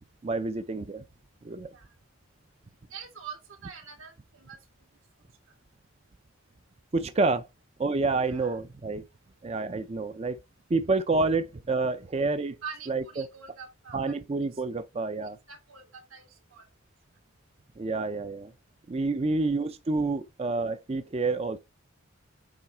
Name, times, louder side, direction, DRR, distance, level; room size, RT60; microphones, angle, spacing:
voice 1, 0.2-1.0 1.4-1.7 6.9-7.5 7.8-9.0 9.4-10.4 10.7-12.6 12.9-13.3 13.9-15.4 17.8-18.5 18.9-21.6, right 3 dB, 30° right, 0.4 m, -28 dB
voice 2, 2.9-4.6 8.3-8.5 12.6-14.0 14.5-14.6 15.2-16.2 16.5-16.7, right 6 dB, 80° right, 2.5 m, -44 dB
8.7 x 3.5 x 4.4 m
head